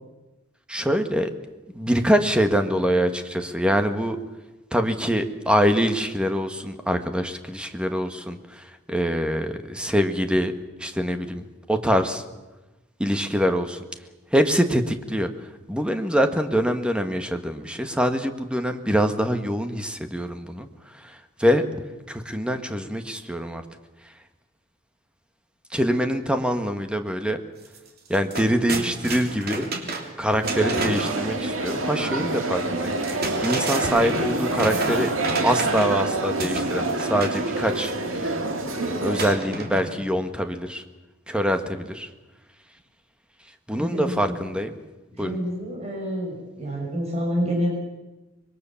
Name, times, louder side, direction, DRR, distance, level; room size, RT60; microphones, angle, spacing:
voice 1, 0.7-1.3 1.7-4.2 4.7-10.5 10.8-12.2 13.0-13.8 14.3-21.6 22.1-23.6 24.0-24.1 25.7-27.4 28.1-29.7 30.2-35.1 35.4-38.4 38.7-40.8 41.3-42.1 43.7-44.8 45.2-45.4, equal, 5° right, 7 dB, 1.6 m, -24 dB
sound 1, 27.6-27.8 28.1-31.2 32.8-36.0 36.4-37.4 39.2-40.1, right 3 dB, 50° right, 3.1 m, -31 dB
sound 2, 30.4-39.3, right 2 dB, 80° right, 2.6 m, -27 dB
voice 2, 43.8-44.3 45.2-47.7, equal, 35° right, -2 dB, 5.6 m, -28 dB
25.0 x 22.0 x 7.2 m, 1.1 s
head